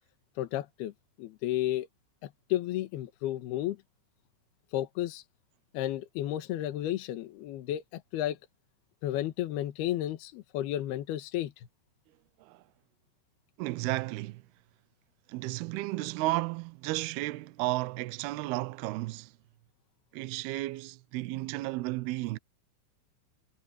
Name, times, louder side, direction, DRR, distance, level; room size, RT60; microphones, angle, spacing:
voice 1, 0.4-0.9 1.2-1.9 2.2-3.8 4.7-5.2 5.7-8.4 9.0-11.7, left 13 dB, 65° left, 3.1 m, -32 dB
voice 2, 13.6-14.4 15.3-19.3 20.1-22.4, right 19 dB, 85° right, 2.2 m, -33 dB
omnidirectional pair, 5.5 m